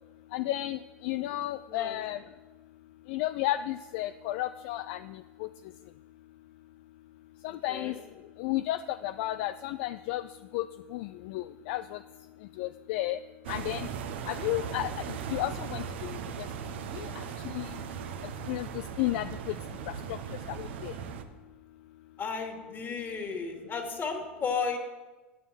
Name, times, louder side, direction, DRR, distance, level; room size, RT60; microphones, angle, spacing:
voice 1, 0.3-2.2 3.1-5.5 7.4-8.0 8.4-10.2 10.5-12.0 12.6-13.2 13.5-13.9 14.3-16.2 16.9-17.8 18.5-19.6 19.9-20.2 20.5-20.9, left 15 dB, 65° left, 12 dB, 0.4 m, -33 dB
voice 2, 1.7-2.0 7.5-8.0 22.2-24.8, left 5 dB, 35° left, 4 dB, 2.5 m, -34 dB
sound 1, 13.4-21.2, right 7 dB, 70° right, 1.0 m, -38 dB
10.0 x 8.1 x 7.5 m, 1.2 s
hypercardioid pair, 80°, 6 cm